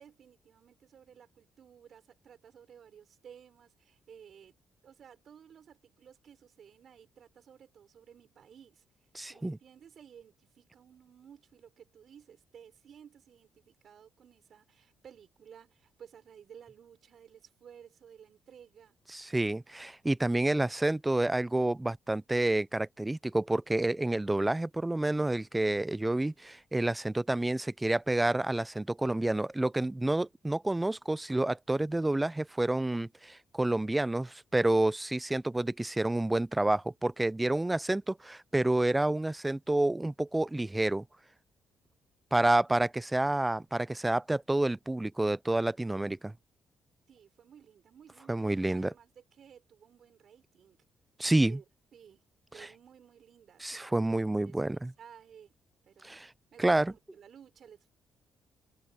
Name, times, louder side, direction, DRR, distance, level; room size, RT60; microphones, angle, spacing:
voice 1, 0.0-4.5 4.8-8.8 9.3-19.0 47.1-50.8 51.4-51.6 51.9-52.2 52.5-55.5 55.8-56.2 56.5-57.9, right 8 dB, 60° right, 5.8 m, -55 dB
voice 2, 9.1-9.6 19.1-41.0 42.3-46.3 48.3-48.9 51.2-51.6 52.6-52.7 53.6-54.9 56.0-56.3 56.6-56.9, right 2 dB, 10° right, 0.5 m, -29 dB
cardioid pair, 90°, 0 cm